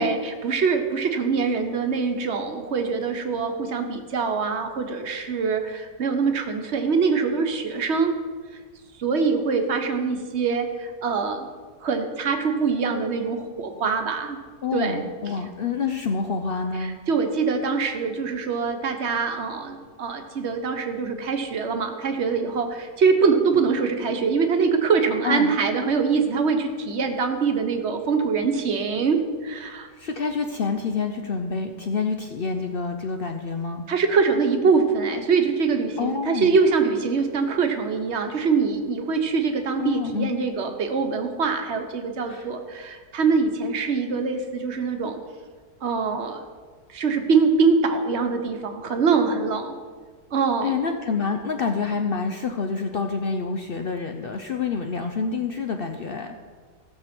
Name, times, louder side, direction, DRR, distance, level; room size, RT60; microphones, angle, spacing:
voice 1, 0.0-8.1 9.0-11.5 11.8-14.4 14.7-15.3 16.8-29.9 33.9-45.2 45.8-46.4 46.9-49.7 50.3-50.7, right 5 dB, 45° right, 5 dB, 1.2 m, -24 dB
voice 2, 14.6-17.0 25.2-25.5 30.0-33.8 36.0-36.6 39.8-40.4 42.3-42.5 50.6-56.4, left 5 dB, 75° left, 5 dB, 0.5 m, -27 dB
15.5 x 6.7 x 6.0 m, 1.6 s
omnidirectional pair, 1.8 m